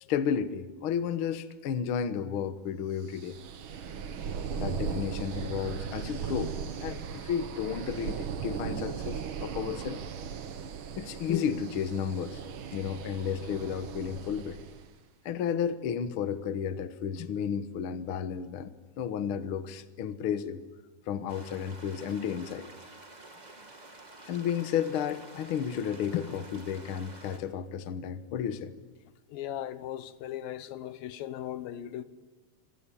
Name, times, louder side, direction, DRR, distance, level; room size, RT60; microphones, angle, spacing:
voice 1, 0.1-3.4 4.5-10.0 10.9-12.4 12.7-14.6 15.2-20.6 21.1-22.7 24.3-28.7, left 8 dB, 55° left, 1.5 m, -32 dB
sound 1, 3.1-14.9, right 7 dB, 60° right, 1.4 m, -37 dB
sound 2, 21.3-27.4, right 2 dB, 20° right, 1.4 m, -50 dB
voice 2, 29.3-32.0, left 11 dB, 85° left, 2.9 m, -38 dB
26.0 x 25.5 x 8.6 m
omnidirectional pair, 4.0 m